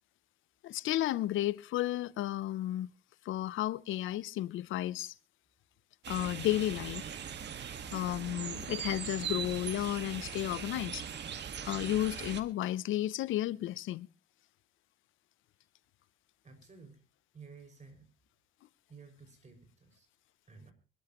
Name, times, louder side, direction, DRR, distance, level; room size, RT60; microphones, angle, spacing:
voice 1, 0.6-2.9 3.3-5.1 6.1-7.1 7.9-11.0 11.7-14.1, left 14 dB, 80° left, 0.6 m, -33 dB
sound 1, 6.0-12.4, right 8 dB, 60° right, 1.6 m, -40 dB
voice 2, 16.4-17.0 17.3-18.1 18.9-20.1 20.5-20.7, right 4 dB, 35° right, 5.7 m, -54 dB
24.5 x 13.0 x 3.0 m
cardioid pair, 90°, 20 cm